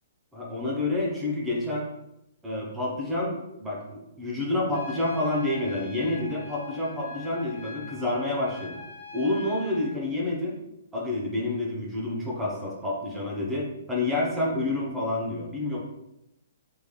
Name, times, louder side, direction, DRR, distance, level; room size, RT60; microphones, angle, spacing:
voice 1, 0.3-1.9 2.4-8.8 9.1-10.5 10.9-15.8, left 2 dB, 10° right, -4 dB, 0.8 m, -28 dB
Trumpet, 4.7-9.9, left 3 dB, 60° left, 0.8 m, -44 dB
3.5 x 3.2 x 2.3 m, 0.86 s
hypercardioid pair, 135°, 0 cm